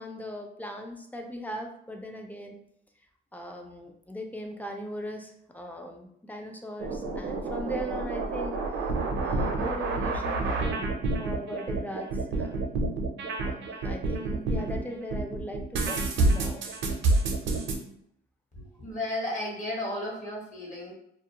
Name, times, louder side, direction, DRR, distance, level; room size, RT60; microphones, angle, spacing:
voice 1, 0.0-2.6 3.3-8.9 9.2-10.9 11.2-12.7 13.4-16.6, equal, 10° left, 3 dB, 0.4 m, -39 dB
sound 1, 6.8-14.8 15.1-17.8, right 3 dB, 70° right, 0.5 m, -28 dB
voice 2, 18.6-20.9, left 1 dB, 40° left, -3 dB, 1.0 m, -34 dB
2.3 x 2.1 x 2.8 m, 0.73 s
cardioid pair, 90°, 20 cm